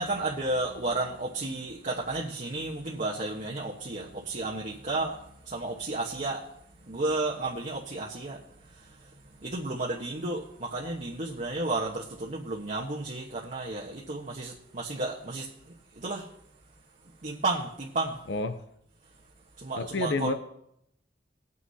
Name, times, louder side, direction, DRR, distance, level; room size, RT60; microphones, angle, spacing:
voice 1, 0.0-6.5 6.8-8.4 8.7-9.1 9.4-16.3 17.2-18.2 19.6-20.3, right 2 dB, 45° right, 1.2 m, -32 dB
voice 2, 18.3-18.6 19.8-20.3, left 3 dB, 75° left, 0.7 m, -29 dB
19.5 x 9.5 x 2.8 m
head